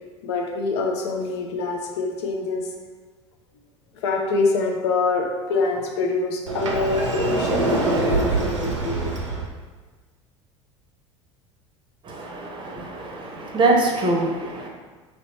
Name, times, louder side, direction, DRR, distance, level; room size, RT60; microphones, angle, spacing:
voice 1, 0.2-2.6 4.0-9.2, left 3 dB, 65° left, 2 dB, 0.5 m, -25 dB
Sliding door, 6.5-9.5, right 2 dB, 80° right, 0.5 m, -24 dB
voice 2, 12.0-14.7, right 2 dB, 30° right, 0 dB, 0.7 m, -24 dB
3.0 x 2.9 x 3.0 m, 1.4 s
figure-of-eight pair, 70°, 16 cm